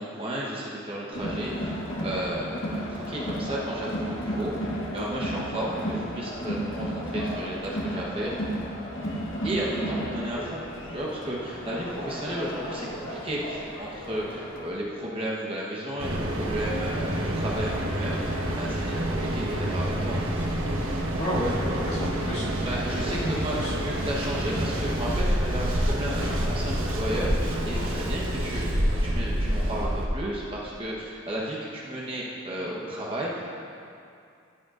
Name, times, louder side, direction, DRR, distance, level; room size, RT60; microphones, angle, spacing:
voice 1, 0.0-8.3 9.4-10.6 10.9-20.2 22.6-33.5, right 1 dB, 25° right, -5 dB, 1.1 m, -33 dB
Crowd, 1.1-14.7, equal, 75° left, 1.3 m, -33 dB
Mechanical fan, 16.0-30.1, right 1 dB, 90° right, 1.1 m, -28 dB
voice 2, 21.2-22.5 23.0-23.7, equal, 50° left, -8 dB, 2.4 m, -31 dB
14.5 x 7.9 x 2.5 m, 2.5 s
head